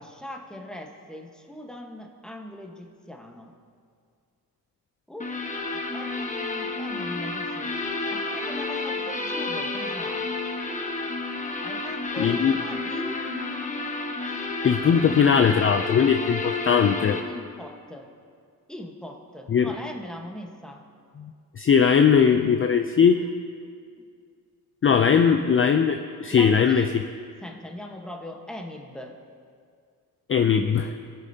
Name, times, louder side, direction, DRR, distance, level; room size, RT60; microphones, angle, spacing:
voice 1, 0.0-3.5 5.1-5.4 5.7-7.7 8.1-10.3 11.6-13.2 14.2-14.5 14.9-15.0 17.3-18.1 18.7-20.8 23.0-23.3 24.0-24.1 26.3-26.9 27.4-29.2, left 1 dB, ahead, 2 dB, 1.2 m, -40 dB
sound 1, 5.2-17.2, left 3 dB, 20° left, 1.1 m, -30 dB
voice 2, 12.2-12.5 14.6-17.2 19.5-19.7 21.2-21.3 21.6-23.2 24.8-26.9 30.3-30.9, left 7 dB, 35° left, 7 dB, 0.4 m, -20 dB
21.0 x 7.4 x 2.8 m, 2.2 s
cardioid pair, 85°, 35 cm